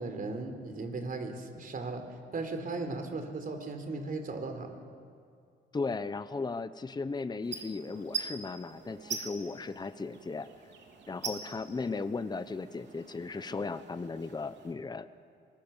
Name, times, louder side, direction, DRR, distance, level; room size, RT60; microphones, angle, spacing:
voice 1, 0.0-2.0 2.3-4.8, right 3 dB, 45° right, 6 dB, 3.8 m, -37 dB
voice 2, 5.7-10.5 11.1-15.1, left 4 dB, 20° left, 12 dB, 0.9 m, -36 dB
sound 1, 7.4-14.8, right 5 dB, 65° right, 3.6 m, -43 dB
24.5 x 21.0 x 7.3 m, 2.2 s
cardioid pair, 90°, 20 cm